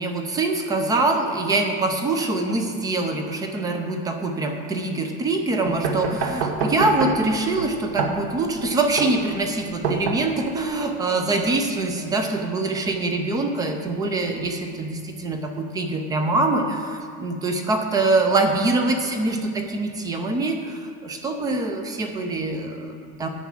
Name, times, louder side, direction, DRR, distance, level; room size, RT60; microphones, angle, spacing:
voice 1, 0.0-23.3, right 2 dB, 10° right, 5 dB, 0.4 m, -24 dB
sound 1, 5.7-10.7, right 4 dB, 50° right, 1.2 m, -28 dB
9.1 x 6.1 x 7.5 m, 2.4 s
supercardioid pair, 165°, 38 cm